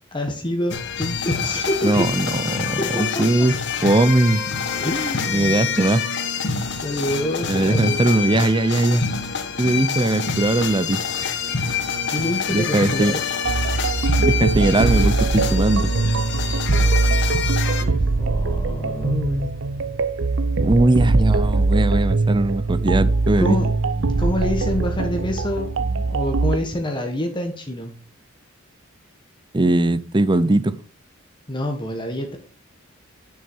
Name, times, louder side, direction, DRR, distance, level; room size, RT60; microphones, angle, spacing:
voice 1, 0.1-2.1 2.8-3.5 4.7-5.6 6.8-8.0 12.1-13.2 17.8-19.5 23.4-27.9 31.5-32.4, left 1 dB, 25° left, 3 dB, 1.3 m, -27 dB
sound 1, 0.7-17.8, left 6 dB, 60° left, 1.3 m, -26 dB
voice 2, 1.8-3.6 3.8-4.4 5.3-6.1 7.5-9.0 9.6-11.0 12.5-13.1 14.2-15.9 20.6-23.6 29.5-30.7, right 2 dB, 25° right, 15 dB, 0.6 m, -19 dB
sound 2, 13.4-26.6, right 3 dB, 65° right, 0.6 m, -21 dB
10.5 x 6.4 x 4.5 m, 0.37 s
head